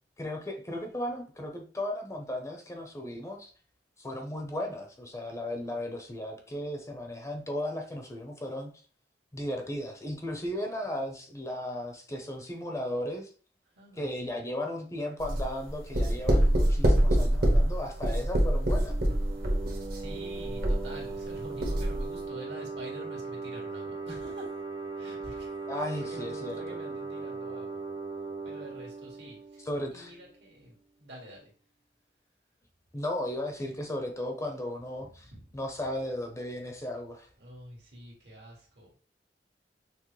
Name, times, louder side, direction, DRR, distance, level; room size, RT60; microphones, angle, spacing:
voice 1, 0.2-3.5 4.0-8.7 9.3-13.3 14.0-18.9 25.7-26.6 29.6-30.1 32.9-37.3, left 1 dB, 20° left, 3 dB, 0.6 m, -35 dB
voice 2, 13.8-14.4 16.4-16.8 19.9-24.5 25.0-27.8 28.4-29.6 29.9-31.5 35.3-35.4 37.4-38.9, equal, 75° right, -1 dB, 1.6 m, -47 dB
sound 1, 15.2-21.3 21.6-22.0, right 1 dB, 55° right, 1.0 m, -25 dB
sound 2, 18.9-30.3, right 4 dB, 25° right, 0.6 m, -39 dB
5.8 x 2.0 x 3.1 m, 0.41 s
head